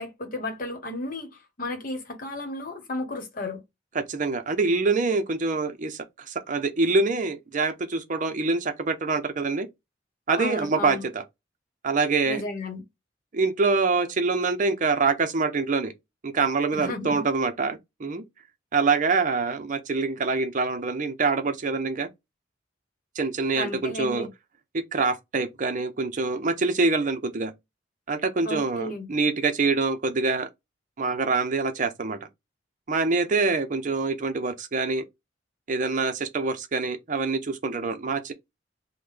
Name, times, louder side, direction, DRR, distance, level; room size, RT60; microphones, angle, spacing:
voice 1, 0.0-3.6 10.4-11.0 12.3-12.8 16.7-17.2 23.5-24.3 28.4-29.1, left 1 dB, 50° left, 1.0 m, -33 dB
voice 2, 3.9-9.7 10.3-11.2 11.8-12.5 13.3-15.9 16.2-18.2 18.7-22.1 23.2-24.3 24.7-27.5 28.1-30.5 31.0-32.2 32.9-35.0 35.7-38.3, right 4 dB, 45° right, 0.6 m, -25 dB
3.7 x 2.1 x 3.2 m
head